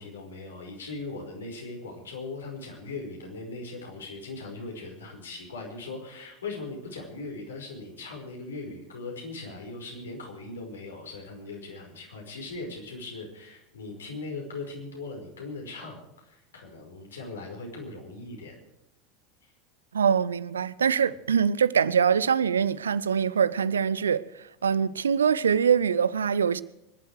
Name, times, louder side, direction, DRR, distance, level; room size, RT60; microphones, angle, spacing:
voice 1, 0.0-18.6, left 3 dB, 70° left, 5.2 m, -39 dB
voice 2, 19.9-24.2 24.6-26.6, right 7 dB, 70° right, 0.6 m, -23 dB
24.0 x 11.5 x 4.8 m
figure-of-eight pair, 80°, 0 cm